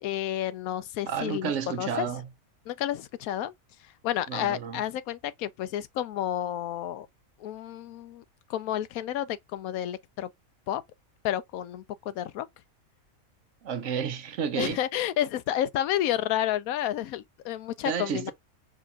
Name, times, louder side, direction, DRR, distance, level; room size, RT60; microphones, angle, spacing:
voice 1, 0.0-2.1 2.7-3.5 3.8-7.1 7.4-8.2 8.5-10.3 10.7-10.8 11.2-12.5 14.6-18.3, left 11 dB, 85° left, 1.0 m, -30 dB
voice 2, 1.1-2.3 4.3-4.8 13.6-14.8 17.9-18.3, right 7 dB, 65° right, 0.9 m, -31 dB
5.0 x 2.8 x 2.3 m
omnidirectional pair, 1.5 m